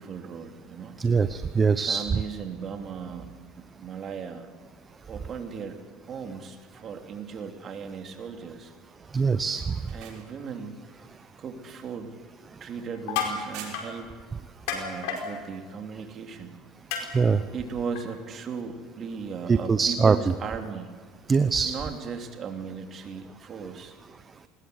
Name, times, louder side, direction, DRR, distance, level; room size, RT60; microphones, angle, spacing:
voice 1, 0.0-1.0 1.7-3.3 3.6-4.5 5.1-5.8 6.1-8.7 9.9-10.8 11.4-12.2 12.6-14.1 14.7-16.6 17.5-20.9 21.6-23.9, right 6 dB, 40° right, 4 dB, 3.0 m, -37 dB
voice 2, 1.0-2.0 9.1-9.6 17.1-17.4 19.5-20.2 21.3-21.7, right 5 dB, 25° right, 12 dB, 0.8 m, -22 dB
sound 1, 9.6-14.2 14.6-15.4, right 7 dB, 65° right, 6.2 m, -49 dB
sound 2, 12.9-13.4 13.7-13.9 14.7-15.2 16.9-17.0 18.0-18.1, left 8 dB, 80° left, 4.6 m, -29 dB
20.5 x 20.0 x 8.1 m, 1.5 s
supercardioid pair, 105°, 0 cm